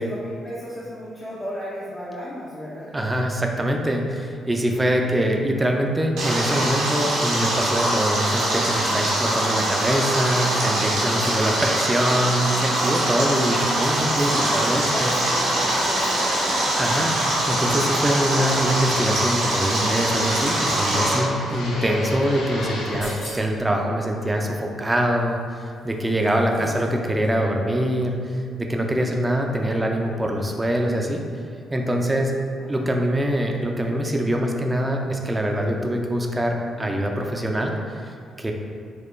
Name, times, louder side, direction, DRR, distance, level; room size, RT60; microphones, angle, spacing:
voice 1, 0.0-2.9 14.2-16.7 26.5-27.2 32.6-33.1, equal, 25° left, -7 dB, 0.7 m, -35 dB
voice 2, 2.9-15.1 16.7-17.1 17.5-31.2 31.7-32.4 32.7-38.1 38.4-38.5, equal, 20° right, 2 dB, 0.5 m, -24 dB
Stream, 6.2-21.2, right 1 dB, 75° right, 0.8 m, -23 dB
Fixed-wing aircraft airplane, 13.5-23.1, left 1 dB, 75° left, 0.6 m, -34 dB
sound 1, 22.7-23.7 25.2-26.9 27.2-27.3, left 2 dB, 55° left, 0.9 m, -42 dB
4.2 x 2.2 x 3.2 m, 2.3 s
hypercardioid pair, 45°, 0 cm